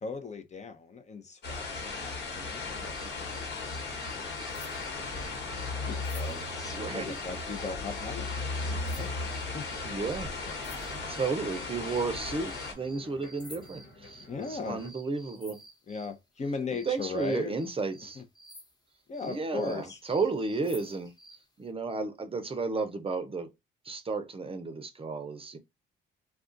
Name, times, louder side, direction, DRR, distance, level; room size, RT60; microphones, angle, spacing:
voice 1, 0.0-5.1 5.9-8.4 8.6-9.1 9.5-9.7 10.4-10.9 14.3-14.8 15.9-17.5 18.2-18.3 19.1-20.0, left 4 dB, 35° left, 0.7 m, -39 dB
sound 1, 1.4-12.7, left 3 dB, 60° left, 1.3 m, -36 dB
sound 2, 2.9-16.2 16.7-21.5, equal, 20° left, 1.0 m, -53 dB
sound 3, 4.7-14.9, left 1 dB, 85° left, 1.1 m, -52 dB
voice 2, 6.7-7.2 9.8-10.3 11.1-15.6 16.9-18.2 19.2-21.1 21.6-23.5 23.8-25.6, right 4 dB, 30° right, 0.6 m, -33 dB
2.4 x 2.3 x 3.8 m
cardioid pair, 90°, 20 cm